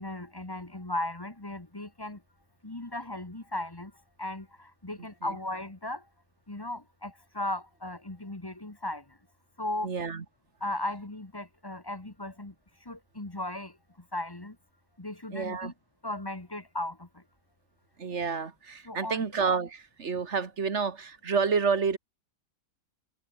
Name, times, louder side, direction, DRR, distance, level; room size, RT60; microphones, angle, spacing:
voice 1, 0.0-2.2 2.6-3.9 4.2-6.0 6.5-9.0 9.6-9.9 10.6-12.5 12.8-13.7 14.1-14.6 15.0-15.7 16.0-17.2 18.8-19.3, left 1 dB, 15° left, 1.5 m, -36 dB
voice 2, 9.8-10.2 15.3-15.7 18.0-22.0, right 5 dB, 45° right, 2.0 m, -29 dB
omnidirectional pair, 1.7 m